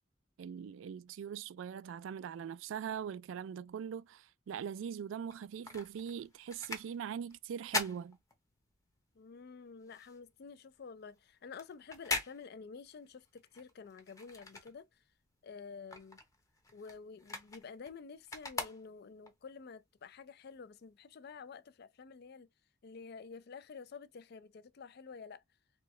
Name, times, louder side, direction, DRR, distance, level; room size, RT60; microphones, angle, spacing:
voice 1, 0.4-8.2, right 8 dB, 80° right, 0.3 m, -41 dB
sound 1, 5.2-8.9 9.3-15.2 15.5-19.3 19.9-20.0, left 3 dB, 20° left, 0.8 m, -42 dB
voice 2, 9.2-15.0 15.4-16.2 16.7-22.5 22.8-25.4, left 5 dB, 55° left, 0.4 m, -50 dB
4.4 x 2.2 x 3.1 m
head